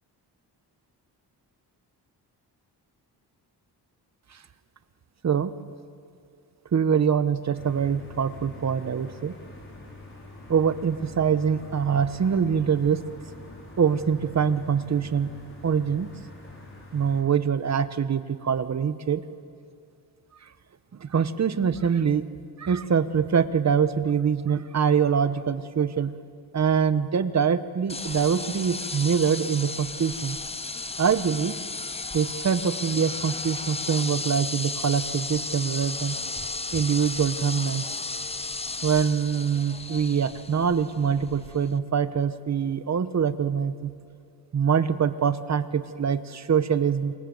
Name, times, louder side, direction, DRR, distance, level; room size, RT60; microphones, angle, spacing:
voice 1, 6.7-9.3 10.5-13.0 13.8-15.3 15.6-16.1 16.9-19.2 21.0-22.3 22.6-26.1 26.5-30.4 31.0-31.6 32.1-36.2 36.7-37.9 38.8-43.9 44.5-47.1, right 7 dB, 40° right, 12 dB, 1.1 m, -24 dB
sound 1, 7.5-17.2, left 2 dB, 30° left, 5.8 m, -45 dB
sound 2, 27.9-41.8, left 3 dB, 15° left, 0.7 m, -34 dB
27.0 x 26.0 x 7.9 m, 2.3 s
cardioid pair, 125°, 40 cm